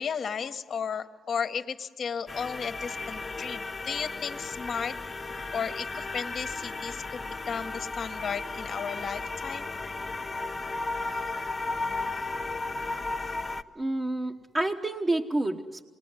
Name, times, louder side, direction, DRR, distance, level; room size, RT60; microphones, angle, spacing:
voice 1, 0.0-4.9 5.5-9.7, left 6 dB, 50° left, 9 dB, 1.3 m, -34 dB
sound 1, 2.3-13.6, left 3 dB, 25° left, 0.8 m, -35 dB
voice 2, 13.7-15.8, right 2 dB, 20° right, 0 dB, 1.2 m, -29 dB
27.0 x 20.5 x 9.8 m, 1.5 s
cardioid pair, 90°, 0 cm